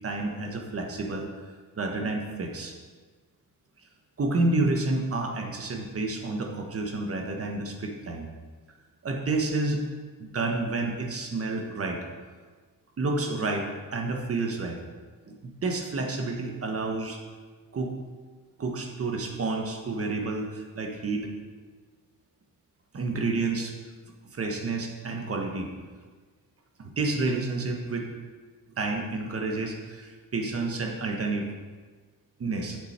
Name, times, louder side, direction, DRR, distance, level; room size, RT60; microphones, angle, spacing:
voice 1, 0.0-2.7 4.2-8.3 9.0-9.8 10.2-12.0 13.0-14.8 15.2-15.3 15.6-17.2 17.7-17.9 18.6-21.3 22.9-23.8 24.3-25.7 26.8-28.1 28.8-31.5 32.4-32.8, right 3 dB, 40° right, 2 dB, 1.3 m, -29 dB
8.5 x 7.2 x 4.4 m, 1.4 s
cardioid pair, 120°, 37 cm